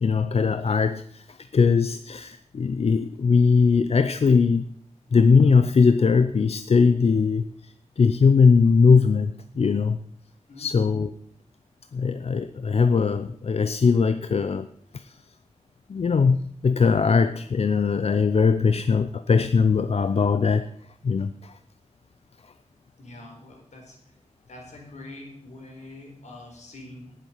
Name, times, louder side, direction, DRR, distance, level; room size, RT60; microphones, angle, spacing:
voice 1, 0.0-1.2 1.5-4.7 5.1-7.4 8.0-10.0 10.6-11.1 11.9-14.7 14.9-15.1 15.9-20.7 21.0-21.5, left 5 dB, 60° left, 11 dB, 0.6 m, -20 dB
voice 2, 10.5-10.9 23.0-24.0 24.5-27.2, left 2 dB, 75° left, 1 dB, 4.3 m, -44 dB
18.0 x 7.7 x 5.6 m, 0.65 s
wide cardioid pair, 120°, 12 cm